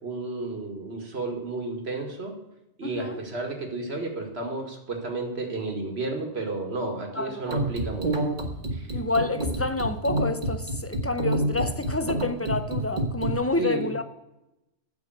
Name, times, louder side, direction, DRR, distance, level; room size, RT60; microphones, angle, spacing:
voice 1, 0.0-2.3 2.8-8.3 8.7-8.9 13.6-13.9, right 3 dB, 65° right, 2.2 m, -32 dB
voice 2, 2.8-3.2 7.1-7.4 8.9-14.0, left 2 dB, 25° left, 0.3 m, -28 dB
sound 1, 7.5-13.3, right 1 dB, 45° right, 1.6 m, -28 dB
9.7 x 5.7 x 7.9 m
omnidirectional pair, 1.2 m